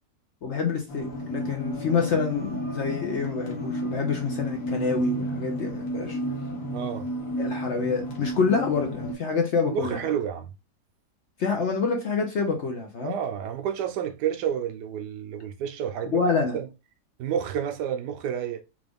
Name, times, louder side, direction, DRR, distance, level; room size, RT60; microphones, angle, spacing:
voice 1, 0.4-6.2 7.4-10.0 11.4-13.1 16.1-16.6, left 5 dB, 60° left, 0.8 m, -27 dB
sound 1, 0.9-9.1, equal, 85° left, 1.6 m, -32 dB
voice 2, 6.7-7.1 9.7-10.5 13.0-16.2 16.5-16.7 17.2-18.6, right 9 dB, 90° right, 1.2 m, -30 dB
3.7 x 2.4 x 3.4 m
omnidirectional pair, 1.8 m